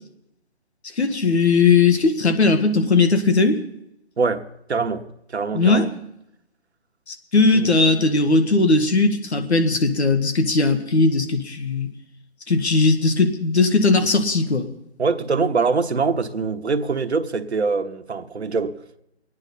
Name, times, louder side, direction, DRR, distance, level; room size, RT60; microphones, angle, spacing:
voice 1, 1.0-3.6 5.5-5.9 7.1-11.9 12.5-14.7, left 3 dB, 75° left, 1.8 m, -18 dB
voice 2, 4.2-5.0 5.3-5.9 7.5-7.7 15.0-18.7, right 4 dB, 75° right, 1.2 m, -23 dB
24.0 x 9.7 x 4.2 m
figure-of-eight pair, 155°, 33 cm